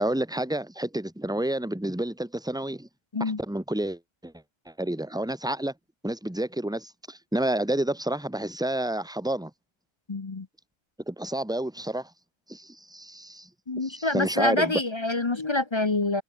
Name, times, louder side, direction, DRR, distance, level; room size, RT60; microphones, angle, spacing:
voice 1, 0.0-2.9 3.2-4.3 4.7-5.7 6.0-9.5 11.1-12.1 12.5-13.5 13.8-14.8, right 1 dB, 5° right, 2.4 m, -29 dB
voice 2, 10.1-10.5 13.7-16.2, left 2 dB, 25° left, 0.6 m, -26 dB
omnidirectional pair, 1.4 m